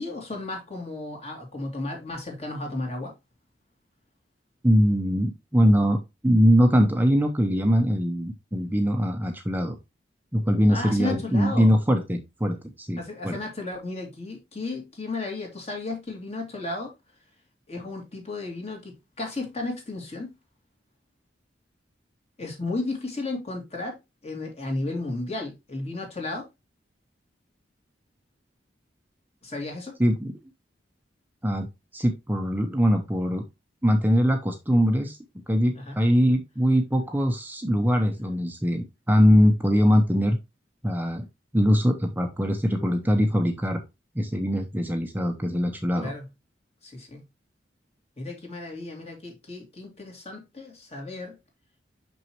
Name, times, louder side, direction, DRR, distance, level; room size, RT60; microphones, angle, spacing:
voice 1, 0.0-3.1 10.7-11.7 13.0-16.9 17.7-20.3 22.4-26.5 29.4-29.9 35.7-36.0 46.0-46.3 46.8-47.2 48.2-51.3, left 2 dB, 35° left, 2.6 m, -34 dB
voice 2, 4.6-9.8 10.3-13.4 30.0-30.3 31.4-31.7 31.9-33.4 33.8-35.2 35.5-40.4 40.8-41.3 41.5-43.8 44.1-46.1, equal, 10° right, 0.7 m, -22 dB
6.2 x 6.0 x 2.9 m
head